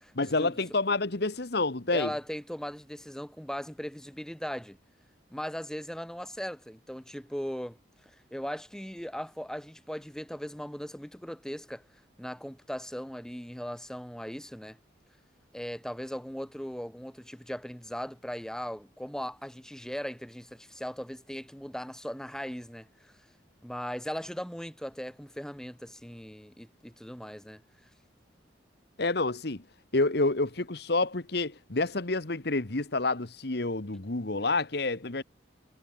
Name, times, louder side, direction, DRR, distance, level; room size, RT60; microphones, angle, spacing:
voice 1, 0.2-2.1 29.0-29.6 29.9-35.2, left 3 dB, 60° left, 1.5 m, -28 dB
voice 2, 1.9-4.8 5.3-7.8 8.3-11.8 12.2-14.8 15.5-23.1 23.6-27.6, equal, 5° left, 2.1 m, -38 dB
head